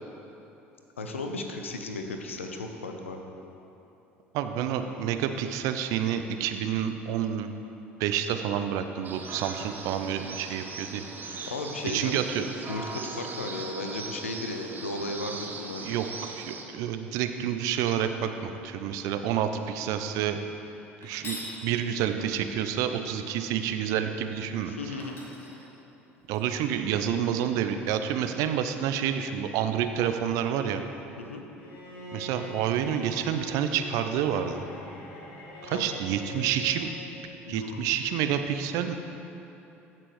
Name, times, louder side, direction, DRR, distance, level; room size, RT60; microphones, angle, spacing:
voice 1, 1.0-3.2 11.5-12.2 12.7-15.8 24.7-25.1 31.2-31.4 35.7-36.0 37.5-37.8, left 2 dB, 80° left, 4 dB, 0.7 m, -35 dB
voice 2, 4.3-7.5 8.0-11.5 11.8-12.4 15.8-20.4 21.0-21.4 21.6-24.7 26.3-30.8 32.1-34.6 35.6-36.9 37.5-38.9, right 9 dB, 55° right, 8 dB, 0.5 m, -29 dB
sound 1, 9.0-16.6, right 4 dB, 30° right, 0.9 m, -39 dB
sound 2, 21.0-21.6 24.5-24.6 25.0-26.4, left 1 dB, 35° left, 2.0 m, -42 dB
Bowed string instrument, 31.6-37.1, equal, 65° left, 1.5 m, -43 dB
15.0 x 6.1 x 3.1 m, 3.0 s
figure-of-eight pair, 65°, 7 cm